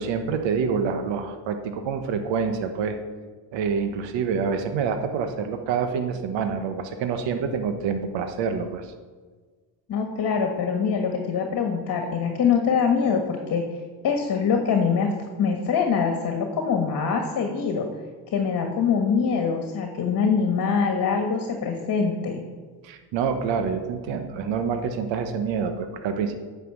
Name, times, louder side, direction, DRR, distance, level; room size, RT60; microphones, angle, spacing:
voice 1, 0.0-3.0 3.5-8.9 22.8-26.3, right 6 dB, 70° right, 7 dB, 1.2 m, -27 dB
voice 2, 9.9-13.6 14.0-15.1 15.4-17.9 18.3-22.4, left 6 dB, 45° left, 4 dB, 1.5 m, -24 dB
9.3 x 6.0 x 7.3 m, 1.4 s
supercardioid pair, 90°, 46 cm